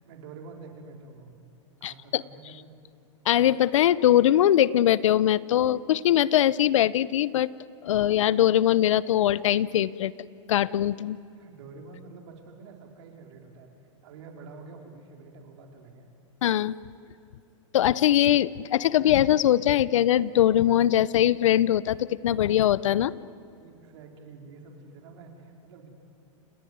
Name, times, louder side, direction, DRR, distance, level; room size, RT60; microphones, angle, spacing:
voice 1, 0.0-1.3 1.8-2.7 11.4-13.7 14.0-16.1 23.5-25.9, right 4 dB, 65° right, 2 dB, 4.5 m, -47 dB
voice 2, 1.8-2.2 3.3-7.5 7.8-10.1 10.5-11.2 16.4-16.7 17.7-23.1, left 12 dB, 80° left, 20 dB, 0.7 m, -22 dB
29.0 x 18.0 x 9.4 m, 2.5 s
hypercardioid pair, 120°, 16 cm